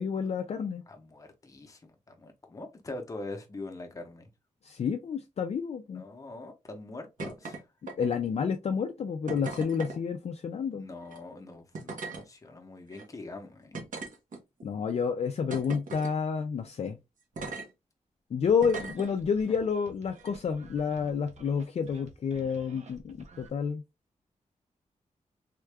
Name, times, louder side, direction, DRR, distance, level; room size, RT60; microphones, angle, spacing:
voice 1, 0.0-0.8 4.6-6.0 8.0-10.8 14.6-17.0 18.3-23.8, left 6 dB, 55° left, 0.4 m, -29 dB
voice 2, 0.9-4.3 5.9-7.7 10.7-13.8, left 2 dB, 25° left, 0.7 m, -43 dB
sound 1, 7.2-7.6 7.9-8.3 9.3-10.0 11.0-11.2 11.7-12.2 12.9-13.0 13.7-14.6 15.5-16.1 17.4-17.7 18.6-19.1 20.2-20.3, right 3 dB, 85° right, 1.1 m, -38 dB
sound 2, 18.4-23.5, right 3 dB, 60° right, 0.7 m, -53 dB
3.6 x 2.3 x 3.2 m
wide cardioid pair, 180°, 13 cm